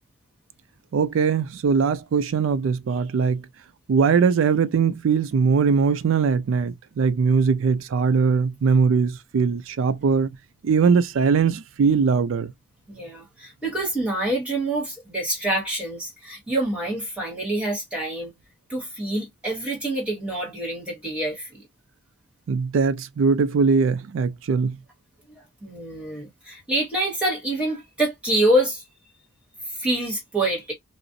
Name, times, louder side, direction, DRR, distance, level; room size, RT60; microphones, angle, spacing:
voice 1, 0.9-3.5 3.9-10.3 10.6-12.5 22.5-24.8, right 5 dB, 80° right, 0.4 m, -21 dB
voice 2, 12.9-18.3 18.7-21.5 25.6-28.8 29.8-30.7, right 1 dB, 5° right, 1.1 m, -26 dB
2.4 x 2.0 x 2.6 m
head